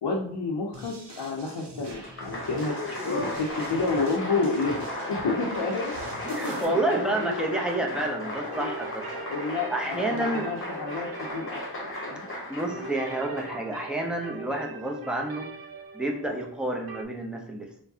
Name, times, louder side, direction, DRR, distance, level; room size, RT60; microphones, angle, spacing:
voice 1, 0.0-2.8 3.0-5.9 6.2-7.4 8.2-8.7 9.3-11.1 11.3-12.3 12.7-12.9, left 3 dB, 75° left, -3 dB, 0.7 m, -30 dB
sound 1, 0.7-6.6, right 1 dB, 75° right, 0.9 m, -45 dB
Applause, 1.9-13.8, left 1 dB, 30° left, 1.0 m, -36 dB
voice 2, 6.2-9.1 9.7-10.5 12.5-15.5 15.9-17.8, right 1 dB, ahead, 1 dB, 0.6 m, -29 dB
sound 2, 8.5-17.0, right 4 dB, 60° right, 0.5 m, -42 dB
4.6 x 2.2 x 2.7 m, 0.62 s
wide cardioid pair, 70°, 41 cm